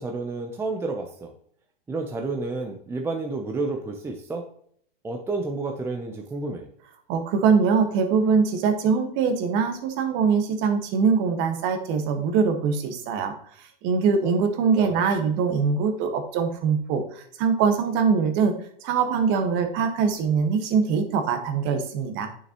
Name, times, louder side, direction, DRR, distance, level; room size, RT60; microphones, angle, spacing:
voice 1, 0.0-1.3 1.9-4.4 5.0-6.7 14.8-15.0, right 3 dB, 10° right, 3 dB, 0.6 m, -30 dB
voice 2, 7.1-18.5 18.8-22.3, right 5 dB, 40° right, 6 dB, 1.5 m, -23 dB
9.1 x 6.6 x 3.0 m, 0.63 s
hypercardioid pair, 135°, 29 cm